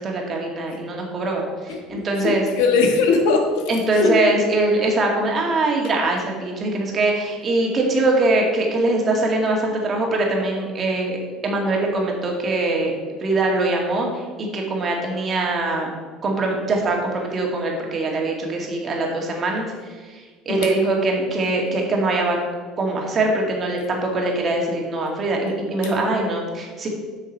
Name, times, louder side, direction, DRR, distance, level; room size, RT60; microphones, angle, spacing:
voice 1, 0.0-2.4 3.7-15.9 16.2-19.7 20.1-22.4 22.8-26.9, right 2 dB, 35° right, 0 dB, 2.1 m, -22 dB
voice 2, 1.7-4.2 20.5-20.7 25.8-25.9, left 4 dB, 85° left, 4 dB, 1.4 m, -21 dB
7.5 x 6.3 x 5.4 m, 1.5 s
cardioid pair, 125°, 0 cm